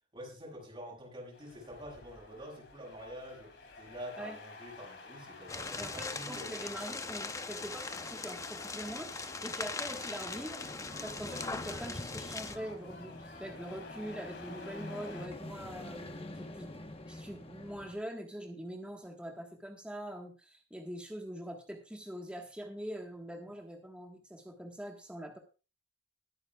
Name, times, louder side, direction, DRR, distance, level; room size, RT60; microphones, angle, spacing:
voice 1, 0.1-6.5, equal, 30° right, 0 dB, 6.6 m, -47 dB
sound 1, 1.3-15.3, left 3 dB, 70° left, 2.8 m, -51 dB
sound 2, 5.5-12.6, left 3 dB, 20° left, 0.7 m, -40 dB
voice 2, 5.8-10.6 11.0-13.1 13.4-25.4, equal, 5° right, 2 dB, 1.5 m, -43 dB
sound 3, 10.6-18.0, left 1 dB, 35° left, 1.1 m, -46 dB
20.5 x 9.5 x 2.4 m, 0.32 s
head